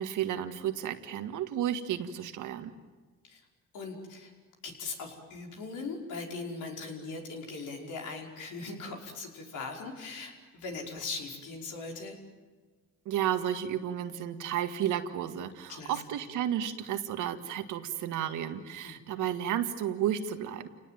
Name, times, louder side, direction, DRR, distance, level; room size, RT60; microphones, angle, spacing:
voice 1, 0.0-2.7 13.1-20.7, right 10 dB, 90° right, 8 dB, 1.9 m, -32 dB
voice 2, 3.7-4.3 4.6-12.2 15.7-16.2 18.8-19.0, left 3 dB, 80° left, 1 dB, 5.5 m, -40 dB
29.5 x 19.0 x 9.4 m, 1.4 s
cardioid pair, 90°, 30 cm